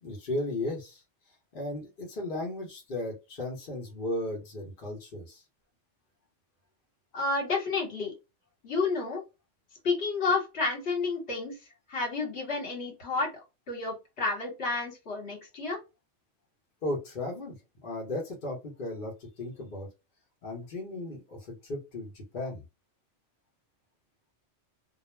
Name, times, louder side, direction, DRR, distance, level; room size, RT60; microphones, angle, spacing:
voice 1, 0.0-1.0 1.5-5.4 16.8-17.5 17.8-19.9 20.4-22.6, left 1 dB, 50° left, -1 dB, 0.9 m, -35 dB
voice 2, 7.1-8.1 8.6-9.2 9.8-11.6 11.9-13.3 13.7-15.8, left 3 dB, 65° left, 0 dB, 1.2 m, -30 dB
2.3 x 2.0 x 3.1 m, 0.26 s
omnidirectional pair, 1.2 m